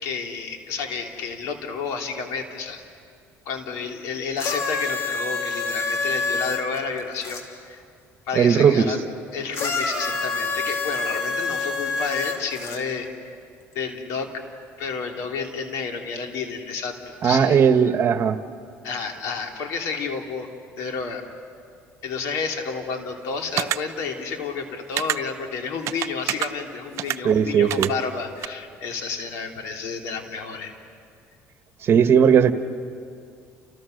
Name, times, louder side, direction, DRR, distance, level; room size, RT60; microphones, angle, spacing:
voice 1, 0.0-2.8 3.4-7.8 8.3-13.1 13.7-14.4 14.8-17.6 18.8-20.5 20.8-21.2 22.0-30.7, left 5 dB, 80° left, 3 dB, 3.2 m, -31 dB
sound 1, 4.4-7.4 9.5-12.8 13.7-13.8, left 4 dB, 65° left, 3.9 m, -27 dB
voice 2, 8.3-8.9 17.2-18.4 27.2-27.9 31.8-32.5, right 7 dB, 50° right, 9 dB, 1.4 m, -17 dB
sound 2, 23.6-23.8 25.0-25.2 25.9-26.5 27.0-27.2 27.7-27.9 28.4-28.5, right 13 dB, 65° right, 0.8 m, -25 dB
30.0 x 29.5 x 6.7 m, 2.4 s
cardioid pair, 100°, 5 cm